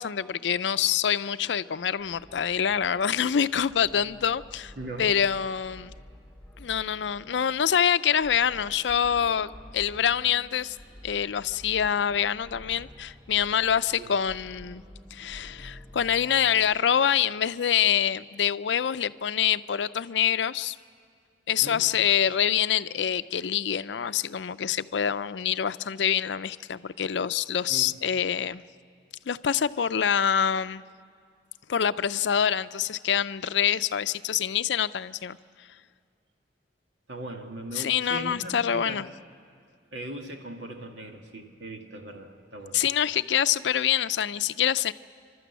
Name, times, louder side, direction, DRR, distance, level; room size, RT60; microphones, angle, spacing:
voice 1, 0.0-4.7 5.0-5.9 6.6-10.8 11.0-14.8 15.1-20.8 21.5-28.6 29.3-30.8 31.7-35.4 37.7-39.1 42.7-44.9, left 8 dB, 85° left, 14 dB, 0.5 m, -26 dB
sound 1, 2.0-17.7, equal, 5° left, 1.1 m, -50 dB
voice 2, 4.8-5.1 14.0-14.1 21.6-21.9 27.7-27.9 37.1-39.0 39.9-42.8, right 1 dB, 85° right, 3 dB, 2.2 m, -39 dB
29.5 x 12.5 x 8.2 m, 2.2 s
head